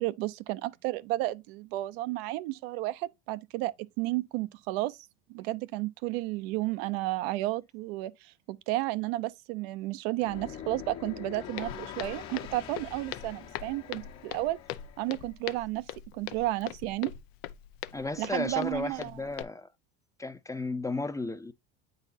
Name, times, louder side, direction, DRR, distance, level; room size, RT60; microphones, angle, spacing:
voice 1, 0.0-5.0 5.3-14.6 15.0-15.9 16.1-17.1 18.2-19.3, right 17 dB, 80° right, 0.5 m, -32 dB
sound 1, 10.1-15.2, left 9 dB, 65° left, 1.3 m, -44 dB
Walk footsteps, 11.6-19.4, left 12 dB, 85° left, 0.5 m, -42 dB
voice 2, 17.9-19.7 20.2-21.5, left 3 dB, 10° left, 0.5 m, -34 dB
8.8 x 4.0 x 2.7 m
supercardioid pair, 85°, 30 cm